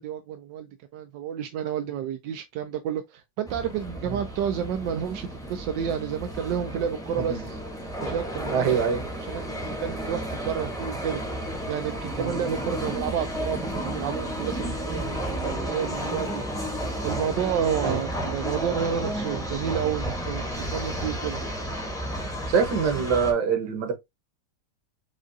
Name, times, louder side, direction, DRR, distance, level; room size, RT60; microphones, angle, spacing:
voice 1, 0.0-7.6 8.0-8.8 9.3-11.2 11.7-16.4 17.0-21.4, right 8 dB, 85° right, 1.2 m, -30 dB
London Underground Station Covent Garden Platform, 3.4-23.3, right 1 dB, 5° left, 0.7 m, -32 dB
voice 2, 8.5-9.0 12.2-12.4 17.8-18.0 22.5-23.9, right 6 dB, 70° right, 1.6 m, -24 dB
7.2 x 2.4 x 2.6 m
omnidirectional pair, 1.9 m